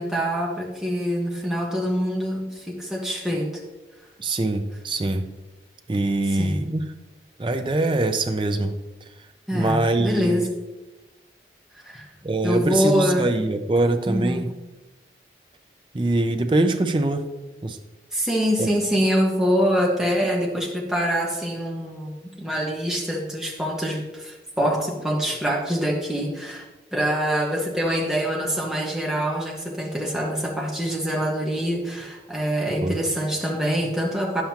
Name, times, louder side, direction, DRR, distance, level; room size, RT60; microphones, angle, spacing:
voice 1, 0.0-3.6 6.4-6.6 9.5-10.5 11.8-12.0 12.4-13.4 14.1-14.4 18.1-26.7 26.9-34.4, equal, 5° right, -2 dB, 1.2 m, -25 dB
voice 2, 4.2-5.3 5.9-6.8 7.4-8.8 9.5-10.5 12.2-14.5 15.9-17.3 17.6-17.8 18.6-18.7 32.8-33.0, right 2 dB, 25° right, 7 dB, 0.5 m, -23 dB
10.0 x 7.4 x 2.9 m, 1.1 s
head